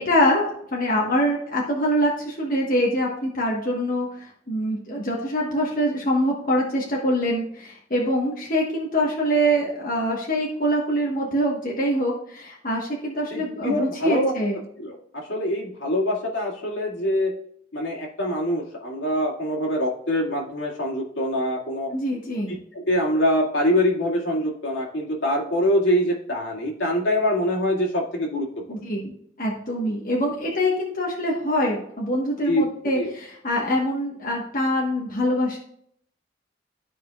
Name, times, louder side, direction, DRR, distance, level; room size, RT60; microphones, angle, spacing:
voice 1, 0.0-14.6 21.9-22.5 28.7-35.6, equal, 45° left, -2 dB, 1.2 m, -24 dB
voice 2, 13.3-14.3 14.8-17.3 17.7-21.9 22.5-28.8 32.5-32.6 33.0-33.1, left 1 dB, 80° left, -2 dB, 2.1 m, -24 dB
13.5 x 4.8 x 2.3 m, 0.69 s
head